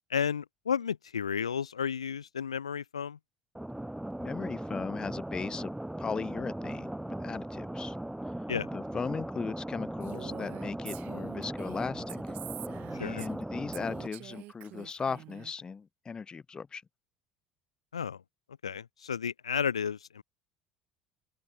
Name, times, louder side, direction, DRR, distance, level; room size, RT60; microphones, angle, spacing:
voice 1, 0.1-3.2 8.5-8.7 13.0-13.3 17.9-18.2 18.6-20.2, left 7 dB, 85° left, 1.8 m, -32 dB
sound 1, 3.6-14.1, right 1 dB, 5° right, 3.7 m, -38 dB
voice 2, 4.2-5.7 6.0-8.0 8.7-12.2 13.0-16.8, left 5 dB, 25° left, 1.2 m, -37 dB
Female speech woman speaking, 10.0-13.4 13.7-15.5, right 18 dB, 55° right, 5.9 m, -46 dB
open air
figure-of-eight pair, 65°, 3 cm